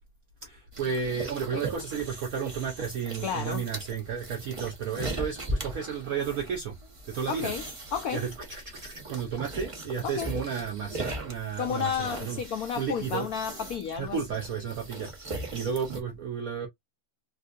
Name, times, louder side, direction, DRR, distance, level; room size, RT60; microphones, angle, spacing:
voice 1, 0.4-6.8 7.1-7.5 8.1-12.4 12.8-13.3 14.0-16.7, right 6 dB, 75° right, 0.7 m, -33 dB
sound 1, 0.7-16.0, right 1 dB, 45° right, 0.4 m, -39 dB
voice 2, 3.2-3.6 7.3-7.6 7.9-8.3 10.0-10.3 11.6-14.2, left 7 dB, 85° left, 0.8 m, -32 dB
3.6 x 2.6 x 2.4 m
omnidirectional pair, 2.2 m